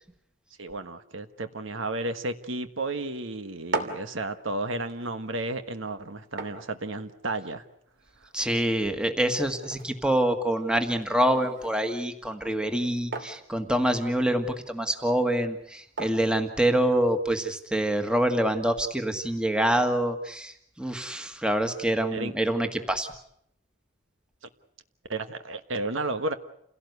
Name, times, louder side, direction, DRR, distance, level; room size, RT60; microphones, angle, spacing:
voice 1, 0.6-7.6 22.1-22.3 25.1-26.3, right 2 dB, 75° right, 9 dB, 1.4 m, -32 dB
sound 1, 3.4-17.3, right 3 dB, 55° right, 2.9 m, -42 dB
voice 2, 8.3-23.1, right 1 dB, 5° right, 6 dB, 1.6 m, -26 dB
28.5 x 17.0 x 8.1 m, 0.73 s
head